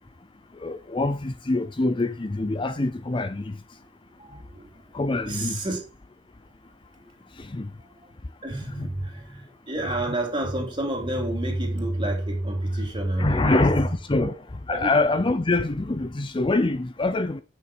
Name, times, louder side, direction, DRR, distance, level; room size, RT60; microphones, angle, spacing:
voice 1, 0.6-3.6 4.9-5.6 7.4-7.7 8.6-8.9 13.2-14.4 14.7-17.4, left 2 dB, 25° left, 0.5 m, -25 dB
voice 2, 5.2-5.8 8.4-13.7 14.2-14.3 14.7-14.9, right 1 dB, 25° right, 3.4 m, -28 dB
8.8 x 6.7 x 5.1 m
head